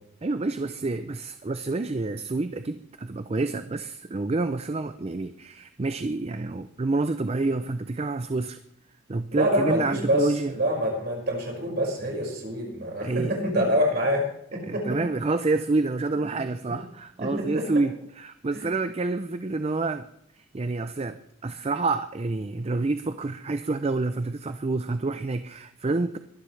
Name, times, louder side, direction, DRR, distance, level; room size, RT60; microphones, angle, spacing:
voice 1, 0.2-8.6 9.1-10.5 13.0-13.3 14.6-20.1 20.4-26.2, right 3 dB, 30° right, 10 dB, 0.4 m, -28 dB
voice 2, 9.3-14.2 14.5-15.0 16.3-16.4 17.2-17.7 18.5-18.8, equal, 45° right, -1 dB, 5.6 m, -26 dB
22.0 x 11.5 x 3.3 m, 0.74 s
head